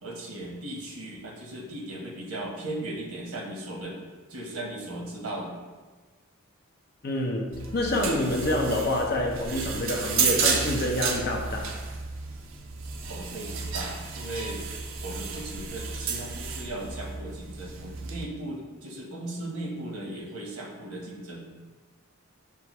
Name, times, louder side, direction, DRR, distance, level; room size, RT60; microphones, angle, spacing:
voice 1, 0.0-4.0 4.3-5.6 13.1-14.6 15.0-21.5, right 1 dB, 85° right, -1 dB, 0.9 m, -37 dB
voice 2, 7.0-11.7, left 1 dB, 45° left, 0 dB, 0.6 m, -27 dB
sound 1, 7.5-18.2, right 5 dB, 65° right, 0.5 m, -32 dB
5.6 x 2.4 x 3.0 m, 1.3 s
head